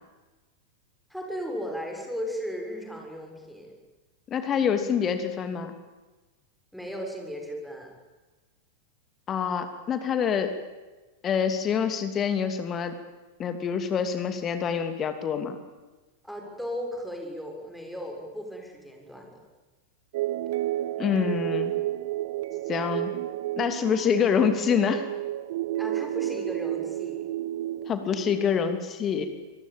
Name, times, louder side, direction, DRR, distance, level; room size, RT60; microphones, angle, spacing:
voice 1, 1.1-3.7 6.7-7.9 16.2-19.4 25.8-27.2, equal, ahead, 1 dB, 6.8 m, -36 dB
voice 2, 4.3-5.7 9.3-10.5 11.2-12.9 13.4-15.6 21.0-21.7 22.7-23.1 23.6-25.0 27.9-29.3, left 7 dB, 25° left, 8 dB, 2.8 m, -26 dB
sound 1, 20.1-28.5, right 14 dB, 55° right, 0.8 m, -31 dB
25.5 x 22.0 x 9.0 m, 1.2 s
figure-of-eight pair, 90°, 0 cm